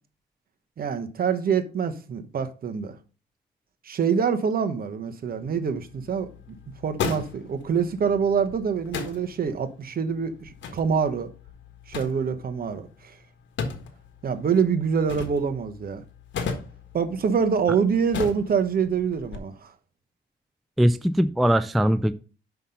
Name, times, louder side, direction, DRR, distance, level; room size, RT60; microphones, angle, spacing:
voice 1, 0.8-3.0 3.9-6.3 6.8-11.3 11.9-12.8 14.2-16.0 16.9-19.5, right 6 dB, 50° right, 1.1 m, -25 dB
sound 1, 5.3-19.4, left 5 dB, 70° left, 1.5 m, -38 dB
voice 2, 20.8-22.1, equal, ahead, 0.4 m, -21 dB
5.8 x 5.8 x 5.4 m
cardioid pair, 90°, 20 cm